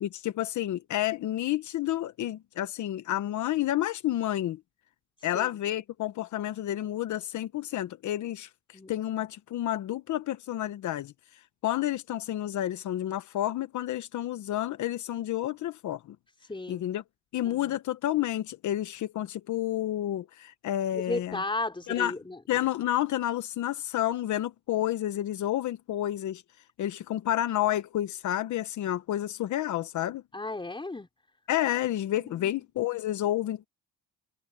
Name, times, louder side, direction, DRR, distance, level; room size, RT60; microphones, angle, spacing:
voice 1, 0.0-4.6 5.2-11.1 11.6-16.2 16.7-17.0 17.3-21.4 21.9-22.1 22.5-26.4 26.8-30.2 31.5-33.7, left 13 dB, 75° left, 1.0 m, -30 dB
voice 2, 16.5-16.8 17.4-17.8 20.9-22.4 30.3-31.1 32.1-32.6, left 2 dB, 15° left, 3.9 m, -35 dB
cardioid pair, 90°, 30 cm